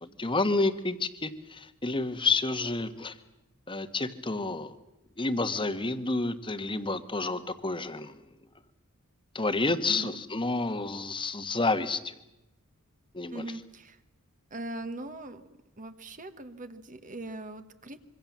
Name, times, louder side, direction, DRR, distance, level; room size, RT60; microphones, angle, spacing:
voice 1, 0.0-3.1 3.7-4.7 5.2-8.2 9.3-12.1 13.1-13.5, left 3 dB, 25° left, 10 dB, 1.4 m, -29 dB
voice 2, 13.3-14.0 14.5-15.4 15.8-18.0, right 2 dB, 35° right, 9 dB, 1.4 m, -40 dB
26.0 x 24.0 x 7.4 m, 0.89 s
head